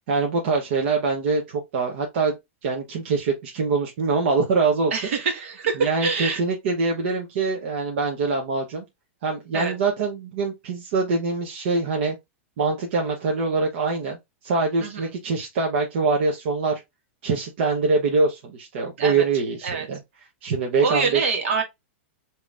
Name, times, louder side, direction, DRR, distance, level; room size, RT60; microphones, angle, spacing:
voice 1, 0.1-2.3 2.6-4.9 5.8-8.8 9.2-12.1 12.6-14.2 14.4-16.8 17.2-20.0 20.4-21.2, right 4 dB, 60° right, 0.9 m, -24 dB
voice 2, 4.9-6.4 9.5-9.7 14.8-15.1 19.0-19.2 19.6-19.9 20.8-21.6, right 5 dB, 75° right, 1.5 m, -25 dB
5.0 x 2.9 x 2.5 m
supercardioid pair, 155°, 7 cm